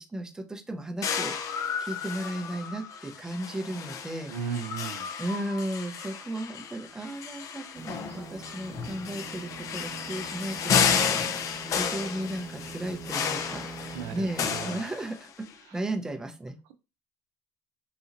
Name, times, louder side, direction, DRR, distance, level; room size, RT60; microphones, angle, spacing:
voice 1, 0.1-4.3 5.2-11.5 11.8-15.5 15.7-16.5, right 1 dB, 10° right, 0.6 m, -35 dB
sound 1, 1.0-15.5, left 7 dB, 50° left, 0.6 m, -32 dB
voice 2, 4.3-5.1 13.9-14.8 15.7-15.8, right 7 dB, 80° right, 0.6 m, -36 dB
sound 2, 7.7-14.7, right 3 dB, 45° right, 1.3 m, -44 dB
3.9 x 2.8 x 2.6 m
cardioid pair, 120°, 7 cm